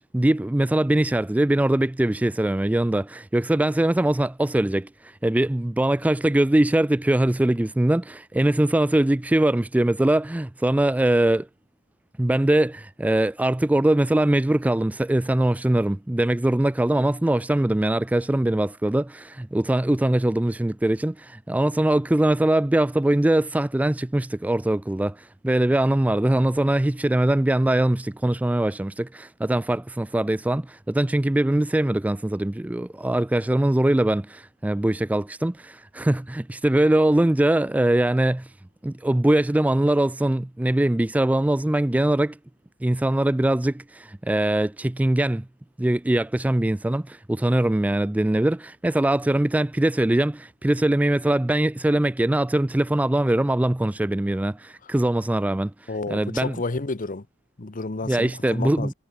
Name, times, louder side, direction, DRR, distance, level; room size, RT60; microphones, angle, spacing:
voice 1, 0.0-11.5 12.2-38.5 38.8-42.4 42.8-45.5 45.8-56.5 58.0-58.9, right 1 dB, 5° right, 0.3 m, -22 dB
voice 2, 55.9-57.3 57.6-58.9, left 3 dB, 40° left, 1.0 m, -30 dB
head